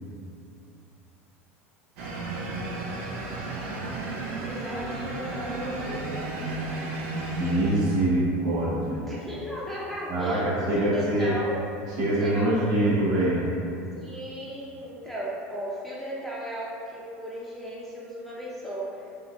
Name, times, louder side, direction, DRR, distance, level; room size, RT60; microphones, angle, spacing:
sound 1, 2.0-8.3, right 2 dB, 75° right, 0.5 m, -33 dB
voice 1, 4.4-6.2 9.0-11.6 12.2-12.9 14.0-19.0, equal, ahead, -7 dB, 0.6 m, -36 dB
voice 2, 7.4-9.1 10.1-11.4 11.9-13.5, right 1 dB, 55° right, -8 dB, 1.2 m, -24 dB
5.2 x 2.1 x 2.3 m, 2.6 s
hypercardioid pair, 95°, 7 cm